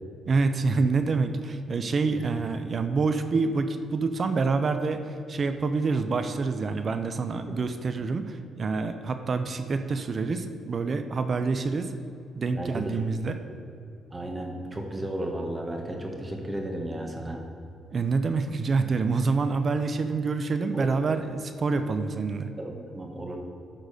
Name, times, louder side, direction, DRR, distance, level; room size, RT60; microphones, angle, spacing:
voice 1, 0.3-12.0 12.4-13.4 17.9-22.5, right 4 dB, 45° right, 8 dB, 0.6 m, -27 dB
voice 2, 12.5-12.9 14.1-17.4 20.7-20.9 22.6-23.4, right 1 dB, 20° right, 2 dB, 1.4 m, -34 dB
11.5 x 4.0 x 6.7 m, 2.6 s
cardioid pair, 90°, 0 cm